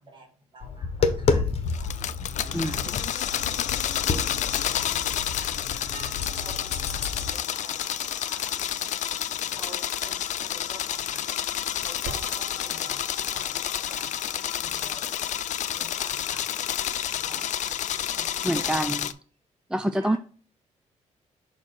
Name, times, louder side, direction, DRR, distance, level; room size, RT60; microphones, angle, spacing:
voice 1, 0.0-1.9 2.4-8.6 9.4-11.5 11.8-14.1 14.6-15.3 15.8-16.6 17.2-17.8 18.1-19.1 19.9-20.2, right 1 dB, 40° right, 3 dB, 2.0 m, -49 dB
Tap, 0.6-7.3, left 4 dB, 50° left, 1.0 m, -30 dB
sound 1, 1.7-19.1, left 10 dB, 70° left, 0.4 m, -30 dB
sound 2, 5.9-14.8, right 3 dB, 80° right, 1.2 m, -47 dB
voice 2, 18.4-19.1 19.7-20.2, right 1 dB, 5° right, 9 dB, 0.3 m, -26 dB
6.5 x 3.0 x 5.9 m, 0.41 s
cardioid pair, 100°, 13 cm